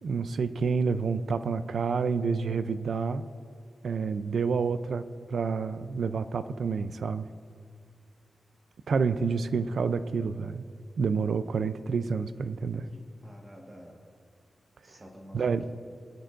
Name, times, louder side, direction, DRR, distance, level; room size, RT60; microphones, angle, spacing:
voice 1, 0.0-3.2 3.8-7.3 8.9-10.6 11.0-12.9 15.3-15.6, right 5 dB, 70° right, 12 dB, 0.4 m, -29 dB
voice 2, 13.2-14.0 14.8-15.7, equal, 20° right, -1 dB, 1.5 m, -49 dB
23.0 x 10.0 x 2.6 m, 2.2 s
wide cardioid pair, 160°, 0 cm